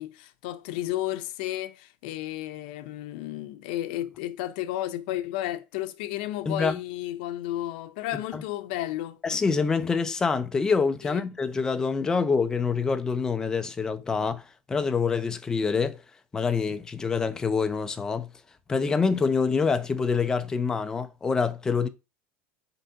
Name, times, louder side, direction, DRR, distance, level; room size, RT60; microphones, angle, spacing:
voice 1, 0.0-9.2 11.0-11.2, left 14 dB, 85° left, 0.6 m, -33 dB
voice 2, 6.5-6.8 8.3-8.4 9.2-14.4 14.7-16.0 16.3-18.3 18.7-21.9, left 5 dB, 15° left, 0.5 m, -26 dB
4.6 x 3.9 x 5.6 m
cardioid pair, 170°, 5 cm